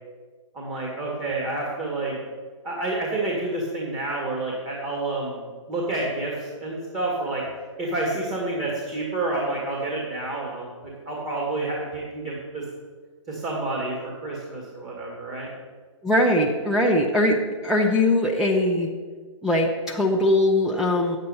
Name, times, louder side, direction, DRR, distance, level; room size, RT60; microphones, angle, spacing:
voice 1, 0.5-2.2 2.6-5.4 5.7-7.5 7.8-12.6 13.3-15.5, right 2 dB, 20° right, -3 dB, 1.8 m, -29 dB
voice 2, 16.0-18.9 19.4-21.2, left 1 dB, 5° right, -2 dB, 0.6 m, -21 dB
9.2 x 8.0 x 5.5 m, 1.5 s
hypercardioid pair, 145°, 16 cm